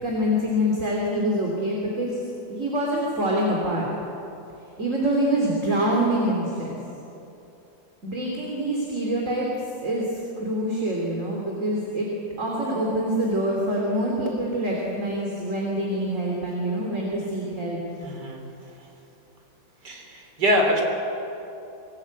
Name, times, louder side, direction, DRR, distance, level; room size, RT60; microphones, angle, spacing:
voice 1, 0.0-2.2 2.5-3.9 4.8-6.8 8.0-9.5 9.8-12.1 12.4-17.8, equal, 40° right, -2 dB, 3.4 m, -25 dB
voice 2, 18.0-18.4 19.8-20.8, equal, 60° right, 2 dB, 4.0 m, -24 dB
25.0 x 17.5 x 8.4 m, 2.9 s
omnidirectional pair, 2.0 m